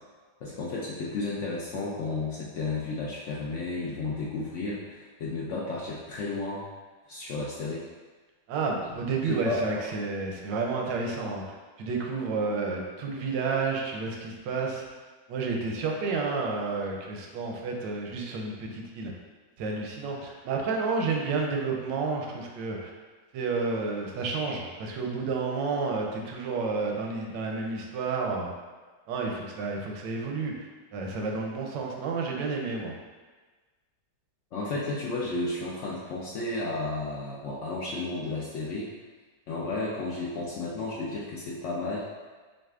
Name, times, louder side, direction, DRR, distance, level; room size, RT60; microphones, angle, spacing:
voice 1, 0.4-6.7 7.1-7.8 9.2-9.6 34.5-38.9 39.5-42.1, left 3 dB, 80° left, -5 dB, 0.6 m, -32 dB
voice 2, 8.5-11.4 11.8-14.8 15.3-19.1 19.6-22.9 23.3-28.5 29.1-32.9, right 4 dB, 90° right, 0 dB, 1.3 m, -30 dB
6.4 x 2.4 x 2.4 m, 1.3 s
omnidirectional pair, 1.9 m